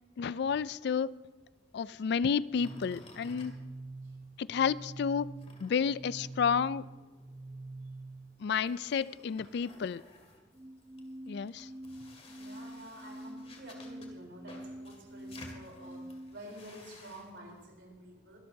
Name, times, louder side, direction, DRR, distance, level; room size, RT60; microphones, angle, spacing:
voice 1, 0.2-1.1 1.7-3.5 4.4-5.3 5.6-6.8 8.4-10.0 11.3-11.7, left 6 dB, 60° left, 18 dB, 0.3 m, -31 dB
sound 1, 0.9-4.5 4.8-17.7, left 2 dB, 35° left, 2.3 m, -56 dB
sound 2, 2.5-8.5 10.5-16.5, right 2 dB, 20° right, 0.5 m, -46 dB
voice 2, 12.3-18.4, right 1 dB, 60° right, 1 dB, 3.8 m, -50 dB
24.0 x 12.5 x 2.8 m, 1.3 s
head